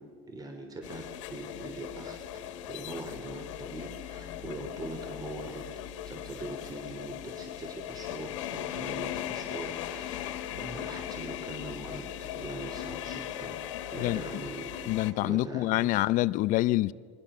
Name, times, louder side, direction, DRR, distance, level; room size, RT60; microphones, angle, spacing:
voice 1, 0.0-2.2 2.7-5.7 6.0-13.6 13.9-14.9 15.2-16.0, right 2 dB, 25° right, 3.6 m, -42 dB
sound 1, 0.8-15.1, left 11 dB, 85° left, 1.9 m, -39 dB
voice 2, 14.9-16.9, left 17 dB, 60° left, 0.7 m, -26 dB
29.0 x 23.0 x 7.0 m
supercardioid pair, 95°, 15 cm